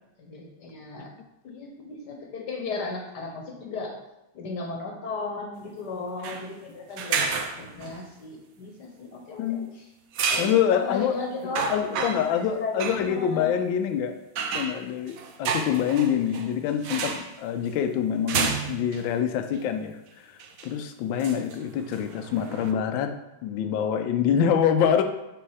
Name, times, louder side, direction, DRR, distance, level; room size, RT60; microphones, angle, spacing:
voice 1, 0.2-1.1 1.4-3.9 4.3-9.9 10.3-13.5, left 3 dB, 60° left, 1 dB, 1.5 m, -35 dB
sound 1, 6.2-6.5 7.0-8.0 10.1-10.6 11.1-11.2 11.5-12.4 12.8-13.1 14.4-16.5 16.8-17.3 18.3-19.0 19.5-19.6 20.4-20.7 21.2-22.7, right 5 dB, 75° right, 0.7 m, -30 dB
voice 2, 10.4-11.2 11.7-14.1 14.5-20.3 20.6-23.1 23.4-25.0, left 8 dB, 80° left, 7 dB, 1.3 m, -25 dB
6.3 x 3.4 x 4.8 m, 0.92 s
omnidirectional pair, 2.2 m